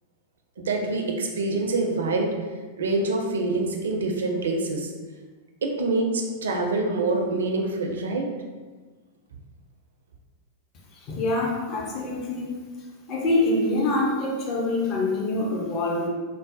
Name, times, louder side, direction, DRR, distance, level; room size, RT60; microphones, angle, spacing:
voice 1, 0.7-2.3 2.8-4.9 5.6-8.2, right 2 dB, 65° right, 2 dB, 0.4 m, -25 dB
voice 2, 10.9-12.6 13.1-16.1, left 2 dB, 35° left, -2 dB, 0.6 m, -25 dB
3.8 x 2.0 x 2.5 m, 1.4 s
figure-of-eight pair, 90°, 0 cm